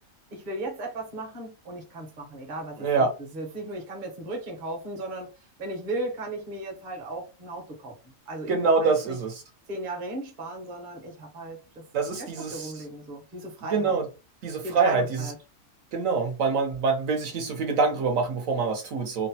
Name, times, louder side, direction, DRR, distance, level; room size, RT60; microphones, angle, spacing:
voice 1, 0.3-3.1 3.3-5.3 5.6-7.9 8.3-9.2 9.7-11.8 12.2-14.0 14.6-15.4, right 2 dB, 40° right, 0.9 m, -36 dB
voice 2, 2.8-3.1 8.5-9.3 11.9-12.7 13.7-14.1 14.4-15.3 15.9-19.3, right 4 dB, 75° right, 1.1 m, -25 dB
2.9 x 2.0 x 2.7 m
omnidirectional pair, 1.4 m